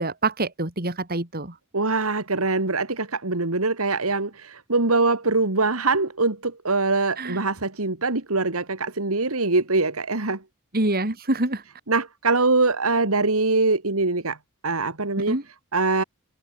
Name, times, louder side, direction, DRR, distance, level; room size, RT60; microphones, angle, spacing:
voice 1, 0.0-1.5 7.2-7.4 10.7-11.6 15.2-15.4, right 2 dB, 45° right, 3.6 m, -26 dB
voice 2, 1.7-10.4 11.9-14.4 14.6-15.4 15.7-16.0, right 3 dB, 75° right, 2.4 m, -23 dB
head